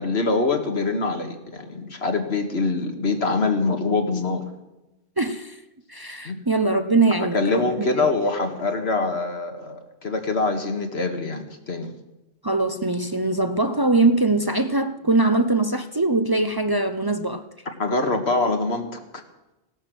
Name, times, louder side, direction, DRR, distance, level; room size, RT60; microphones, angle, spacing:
voice 1, 0.0-4.5 6.3-6.4 7.2-11.9 17.8-19.2, left 3 dB, 80° left, 5 dB, 2.1 m, -24 dB
voice 2, 5.2-5.6 5.9-7.9 12.4-17.4, right 2 dB, 25° right, 8 dB, 0.7 m, -22 dB
17.0 x 12.0 x 6.3 m, 1.0 s
omnidirectional pair, 1.1 m